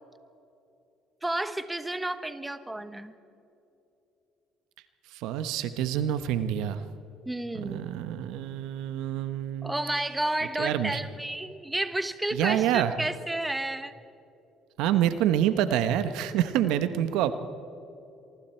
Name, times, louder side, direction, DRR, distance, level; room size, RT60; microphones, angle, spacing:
voice 1, 1.2-3.1 7.2-7.9 9.6-14.0, right 1 dB, 10° right, 11 dB, 1.2 m, -31 dB
voice 2, 5.1-6.8 7.5-9.7 10.6-11.0 12.3-12.9 14.8-17.3, right 11 dB, 80° right, 11 dB, 1.1 m, -27 dB
25.0 x 24.0 x 4.5 m, 2.8 s
supercardioid pair, 85°, 0 cm